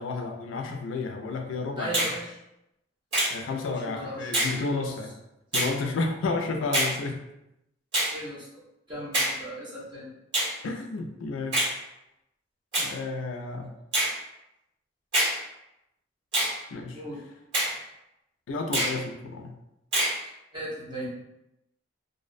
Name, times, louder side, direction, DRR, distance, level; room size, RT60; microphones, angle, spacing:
voice 1, 0.0-2.1 3.3-5.1 5.5-7.2 10.6-11.7 12.8-13.7 16.7-17.0 18.5-19.6, left 3 dB, 90° left, 4 dB, 0.4 m, -31 dB
voice 2, 1.8-2.3 3.4-4.9 8.1-8.6 8.9-10.1 16.9-17.2 20.5-21.1, right 1 dB, 25° right, -8 dB, 0.9 m, -37 dB
Finger snapping, 1.9-2.2 3.1-3.3 4.3-4.6 5.5-5.7 6.7-6.9 7.9-8.1 9.1-9.4 10.3-10.5 11.5-11.7 12.7-12.9 13.9-14.1 15.1-15.4 16.3-16.5 17.5-17.7 18.7-19.0 19.9-20.2, right 1 dB, 60° right, 1.3 m, -25 dB
2.4 x 2.0 x 2.5 m, 0.87 s
head